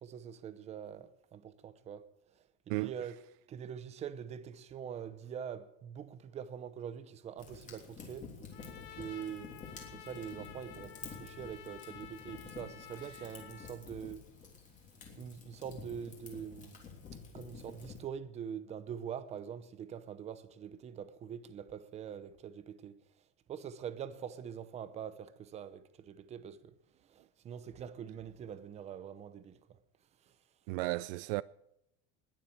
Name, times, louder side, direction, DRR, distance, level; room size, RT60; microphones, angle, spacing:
voice 1, 0.0-2.1 2.8-3.2 3.5-8.3 8.9-9.6 9.9-14.2 15.2-16.8 17.3-23.0 23.5-26.7 27.1-29.6, right 8 dB, 20° right, 0.8 m, -44 dB
Fire, 7.4-18.0, left 5 dB, 25° left, 3.2 m, -50 dB
Trumpet, 8.5-13.8, left 10 dB, 70° left, 1.9 m, -52 dB
voice 2, 30.7-31.4, right 22 dB, 65° right, 0.5 m, -33 dB
20.0 x 7.5 x 8.7 m
cardioid pair, 175°, 30 cm